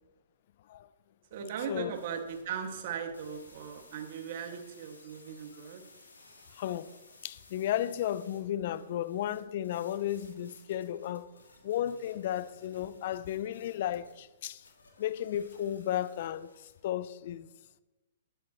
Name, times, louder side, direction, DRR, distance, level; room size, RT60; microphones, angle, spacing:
voice 1, 1.3-5.8, right 7 dB, 50° right, 2.1 m, -38 dB
sound 1, 1.9-16.8, left 3 dB, 80° left, 3.3 m, -59 dB
voice 2, 6.5-6.9 7.2-11.3 11.6-14.6 15.0-16.5 16.8-17.5, left 11 dB, 50° left, 0.6 m, -34 dB
21.0 x 8.0 x 3.2 m
figure-of-eight pair, 120°, 0 cm